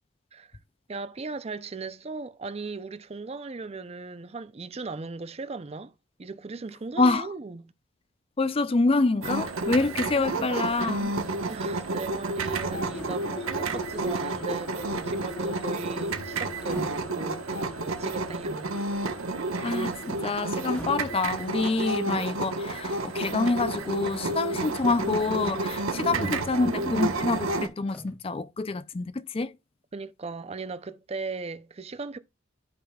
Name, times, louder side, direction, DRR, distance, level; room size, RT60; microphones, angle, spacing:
voice 1, 0.9-5.9 6.2-7.7 9.9-10.5 11.5-18.7 25.9-26.4 29.9-32.2, right 3 dB, 30° right, 0.5 m, -38 dB
voice 2, 8.4-11.1 19.6-29.5, left 3 dB, 25° left, 0.4 m, -26 dB
sound 1, 9.2-27.7, right 2 dB, 90° right, 1.2 m, -31 dB
sound 2, 12.7-21.6 21.9-22.6, left 2 dB, 65° left, 0.9 m, -43 dB
sound 3, 12.8-13.4 14.0-14.1 14.5-15.5 16.5-17.2 19.0-19.4 20.7-21.4 23.0-23.1 23.7-24.4 25.7-25.8 26.1-26.7 27.9-28.3, left 1 dB, 5° left, 1.5 m, -45 dB
13.5 x 5.3 x 2.3 m
head